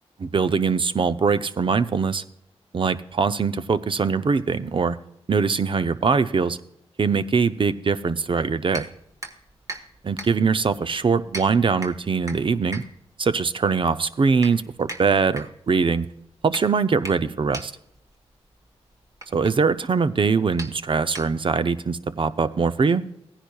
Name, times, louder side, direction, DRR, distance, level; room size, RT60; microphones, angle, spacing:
voice 1, 0.2-2.2 2.7-5.0 5.3-6.6 7.0-8.9 10.0-12.8 13.2-16.1 16.4-17.7 19.3-23.0, right 5 dB, 50° right, 12 dB, 0.6 m, -22 dB
sound 1, 8.7-21.7, right 2 dB, 30° right, 1.4 m, -41 dB
15.5 x 10.0 x 2.3 m, 0.80 s
cardioid pair, 50°, 11 cm